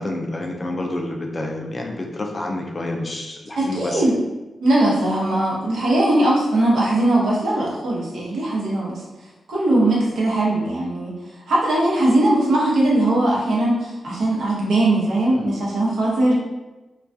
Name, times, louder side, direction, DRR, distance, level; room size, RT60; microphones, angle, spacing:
voice 1, 0.0-4.0, left 1 dB, 30° left, 1 dB, 0.3 m, -28 dB
voice 2, 3.6-4.1 4.6-9.0 9.5-11.2 11.5-16.3, right 1 dB, 90° right, -5 dB, 0.7 m, -20 dB
2.3 x 2.2 x 2.5 m, 1.1 s
wide cardioid pair, 120°, 0 cm